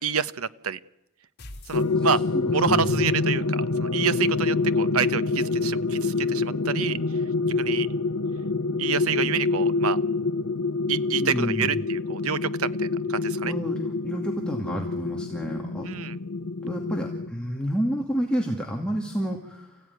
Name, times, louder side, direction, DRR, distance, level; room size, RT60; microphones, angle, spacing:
voice 1, 0.0-0.8 1.7-2.2 2.5-7.0 7.6-7.9 8.8-10.0 10.9-13.5 15.8-16.2, right 6 dB, 75° right, 14 dB, 0.9 m, -28 dB
sound 1, 1.4-2.7, left 1 dB, 50° left, 3.7 m, -44 dB
sound 2, 1.7-17.3, left 3 dB, 85° left, 0.9 m, -26 dB
voice 2, 2.0-2.9 11.2-11.7 13.4-15.9 16.6-19.8, equal, 5° left, -1 dB, 2.4 m, -30 dB
29.0 x 16.0 x 9.7 m, 0.89 s
head